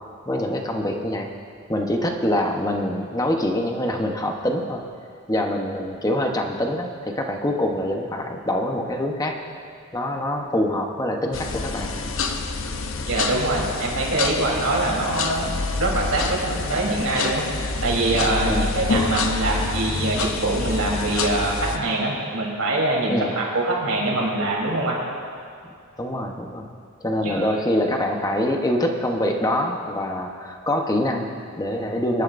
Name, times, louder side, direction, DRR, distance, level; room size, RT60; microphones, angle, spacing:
voice 1, 0.3-1.3 1.7-4.8 5.3-9.5 9.9-12.1 18.4-18.7 23.1-23.3 25.6-25.7 26.0-26.7 27.0-32.2, left 1 dB, 15° left, 2 dB, 0.9 m, -25 dB
sound 1, 11.3-21.8, left 3 dB, 60° left, 0.7 m, -27 dB
voice 2, 13.1-25.0 27.2-27.5, right 2 dB, 85° right, -3 dB, 3.5 m, -24 dB
23.5 x 11.5 x 2.6 m, 2.3 s
head